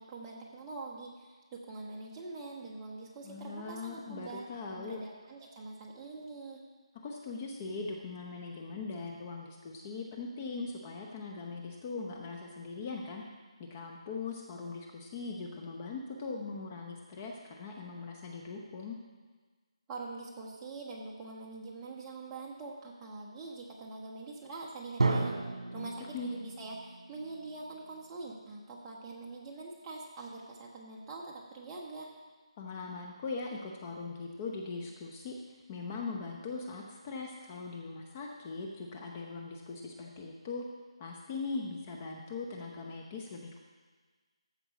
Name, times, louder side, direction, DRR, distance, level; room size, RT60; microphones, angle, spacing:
voice 1, 0.0-4.5 4.7-6.6 19.9-32.1, right 3 dB, 15° right, -3 dB, 1.2 m, -44 dB
voice 2, 3.2-5.0 7.0-13.2 13.7-19.0 25.8-26.3 32.6-35.4 35.7-40.6 41.0-43.6, left 4 dB, 20° left, 0 dB, 0.8 m, -40 dB
Drum, 25.0-28.7, right 3 dB, 70° right, 1.7 m, -34 dB
14.5 x 5.4 x 6.0 m, 1.4 s
figure-of-eight pair, 165°, 3 cm